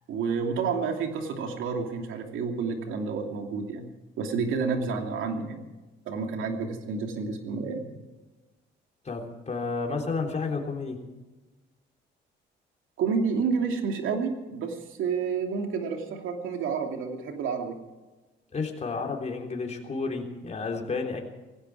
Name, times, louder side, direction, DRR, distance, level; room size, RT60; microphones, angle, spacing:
voice 1, 0.1-3.9 4.2-5.6 6.1-7.9 13.0-17.8, right 5 dB, 85° right, 4 dB, 2.7 m, -29 dB
voice 2, 9.0-11.0 18.5-21.2, left 4 dB, 35° left, 1 dB, 3.5 m, -31 dB
18.5 x 16.5 x 4.8 m, 1.2 s
cardioid pair, 90°, 20 cm